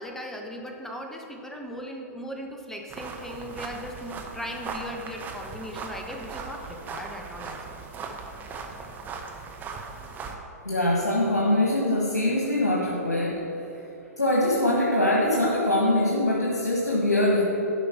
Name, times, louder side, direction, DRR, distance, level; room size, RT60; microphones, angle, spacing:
voice 1, 0.0-7.7, equal, 5° left, 2 dB, 1.0 m, -38 dB
sound 1, 2.9-10.4, right 4 dB, 20° right, 0.9 m, -38 dB
voice 2, 10.6-13.4 14.2-17.4, left 1 dB, 85° left, -4 dB, 1.6 m, -23 dB
11.0 x 5.1 x 5.9 m, 2.9 s
figure-of-eight pair, 110°, 9 cm